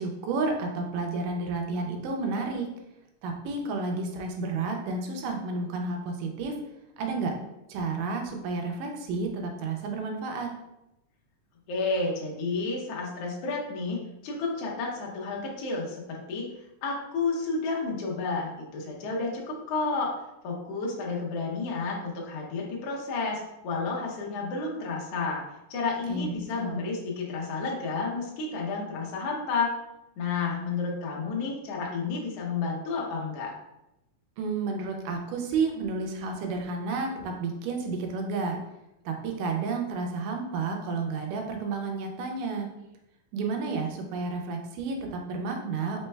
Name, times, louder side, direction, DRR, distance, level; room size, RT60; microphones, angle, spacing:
voice 1, 0.0-2.7 3.2-6.5 7.0-7.4 7.7-10.5 26.1-26.8 34.4-38.6 39.1-42.7 43.3-46.1, right 4 dB, 85° right, 2 dB, 2.1 m, -31 dB
voice 2, 11.7-14.0 14.2-16.5 16.8-20.1 20.4-25.4 25.7-29.7 30.2-33.5, left 4 dB, 80° left, -2 dB, 1.4 m, -31 dB
5.1 x 2.1 x 3.2 m, 0.89 s
omnidirectional pair, 3.8 m